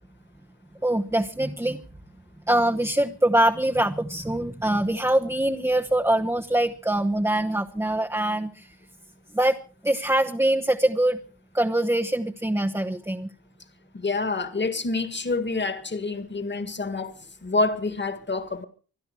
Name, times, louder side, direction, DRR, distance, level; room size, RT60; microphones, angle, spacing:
voice 1, 0.8-1.8 2.5-8.7 9.3-9.6 9.8-11.2 11.5-13.3, right 1 dB, 5° right, 0.9 m, -23 dB
voice 2, 13.9-18.6, left 3 dB, 30° left, 1.9 m, -27 dB
25.5 x 10.5 x 4.7 m
cardioid pair, 75°, 36 cm